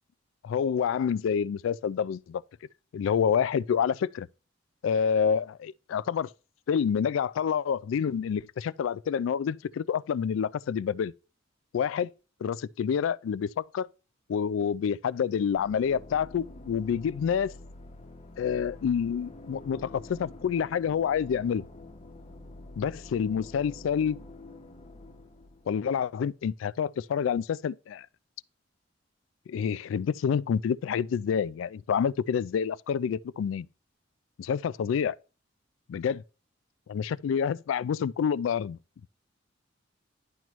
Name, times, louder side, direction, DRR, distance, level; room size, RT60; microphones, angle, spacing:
voice 1, 0.4-2.4 2.9-4.3 4.8-6.3 6.7-11.1 11.7-12.1 12.4-13.9 14.3-17.5 18.4-21.6 22.8-24.2 25.7-28.1 29.5-33.7 34.4-35.2 35.9-36.2 36.9-38.8, left 7 dB, 75° left, 0.3 m, -28 dB
sound 1, 15.6-26.3, left 2 dB, 35° left, 0.7 m, -47 dB
11.0 x 6.0 x 3.0 m
head